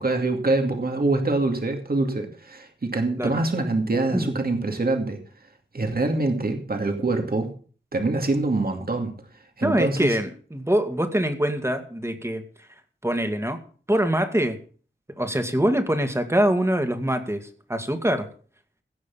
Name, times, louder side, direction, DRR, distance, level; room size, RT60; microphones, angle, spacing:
voice 1, 0.0-5.2 5.7-7.5 7.9-9.1 9.6-10.2, right 2 dB, 50° right, 4 dB, 2.4 m, -24 dB
voice 2, 9.6-12.4 13.0-13.6 13.9-14.6 15.2-18.3, right 1 dB, 15° right, 7 dB, 2.2 m, -24 dB
17.0 x 6.4 x 7.2 m, 0.43 s
wide cardioid pair, 55°, 19 cm